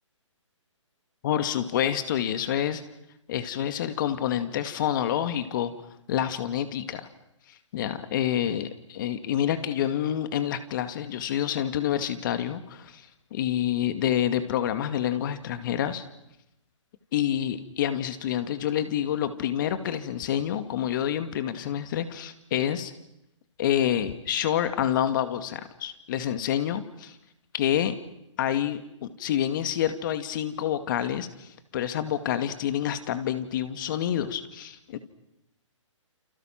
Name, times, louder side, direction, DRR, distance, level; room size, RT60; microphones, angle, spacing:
voice 1, 1.2-2.8 3.3-5.7 6.1-7.1 7.7-16.0 17.1-22.9 23.6-27.2 27.5-27.9 28.4-35.0, left 10 dB, 40° left, 9 dB, 2.3 m, -28 dB
29.0 x 29.0 x 6.0 m, 0.86 s
hypercardioid pair, 145°, 17 cm